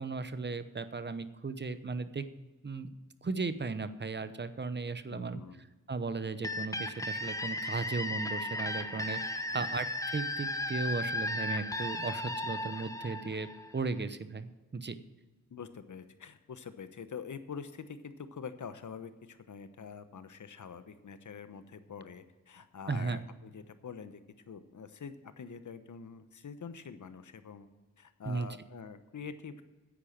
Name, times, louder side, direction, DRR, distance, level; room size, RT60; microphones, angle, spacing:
voice 1, 0.0-2.2 2.6-2.9 3.2-5.4 5.9-13.5 13.7-15.0 22.9-23.2 28.2-28.5, right 4 dB, 30° right, 12 dB, 0.9 m, -36 dB
voice 2, 5.1-5.6 9.5-9.6 15.5-24.2 24.5-27.7 28.0-29.6, left 6 dB, 65° left, 11 dB, 1.1 m, -45 dB
sound 1, 6.4-14.0, left 1 dB, 10° left, 0.9 m, -36 dB
10.0 x 8.3 x 7.3 m, 1.2 s
cardioid pair, 60°, 33 cm